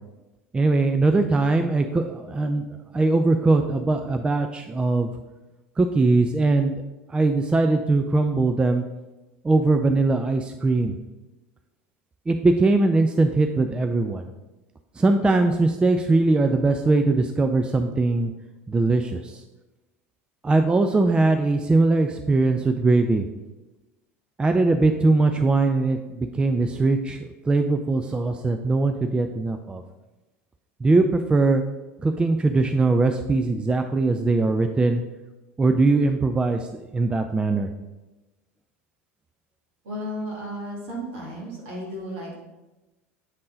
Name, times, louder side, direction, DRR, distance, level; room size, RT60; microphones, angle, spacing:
voice 1, 0.5-5.1 5.8-6.8 7.1-8.8 9.4-11.0 12.3-14.3 15.0-18.3 18.7-19.4 20.4-23.3 24.4-29.8 30.8-31.6 32.0-35.0 35.6-37.7, right 3 dB, 15° right, 6 dB, 0.4 m, -21 dB
voice 2, 39.8-42.4, equal, 60° right, -3 dB, 2.2 m, -34 dB
7.7 x 3.8 x 3.8 m, 1.1 s
figure-of-eight pair, 75°, 8 cm